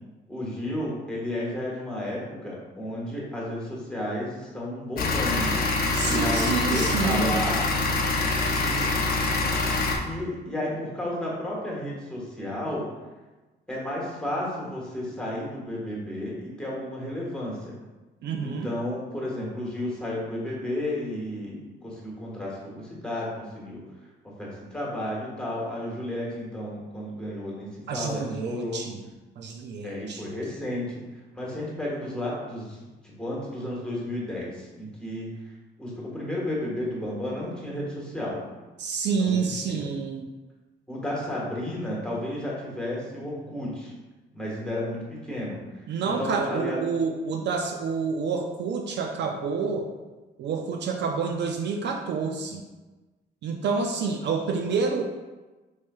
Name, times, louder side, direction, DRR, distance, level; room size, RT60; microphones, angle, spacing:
voice 1, 0.3-5.6 6.1-7.6 8.5-8.9 10.0-12.9 13.7-17.8 18.4-23.8 24.4-28.8 29.8-31.0 31.3-35.3 35.8-38.4 39.1-39.8 40.9-43.9 44.3-45.6 46.0-46.8, left 1 dB, 5° left, -5 dB, 1.3 m, -32 dB
sound 1, 5.0-10.0, left 3 dB, 50° left, 0.7 m, -25 dB
voice 2, 5.9-7.4 18.2-18.7 27.9-29.0 29.4-30.3 38.8-40.3 45.9-49.9 50.4-52.6 53.4-55.0, right 5 dB, 60° right, 3 dB, 0.4 m, -28 dB
4.2 x 3.1 x 2.3 m, 1.2 s
cardioid pair, 90°, 20 cm